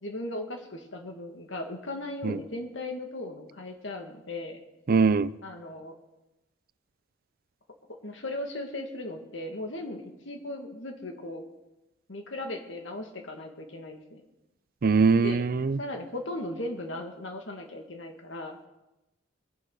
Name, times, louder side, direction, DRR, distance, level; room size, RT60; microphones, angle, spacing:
voice 1, 0.0-4.6 5.4-6.0 7.9-11.5 12.1-14.2 15.2-15.4 15.8-18.6, left 1 dB, 75° left, 2.2 m, -37 dB
voice 2, 4.9-5.3 14.8-15.8, right 4 dB, 50° right, 0.4 m, -22 dB
22.0 x 11.0 x 4.1 m
head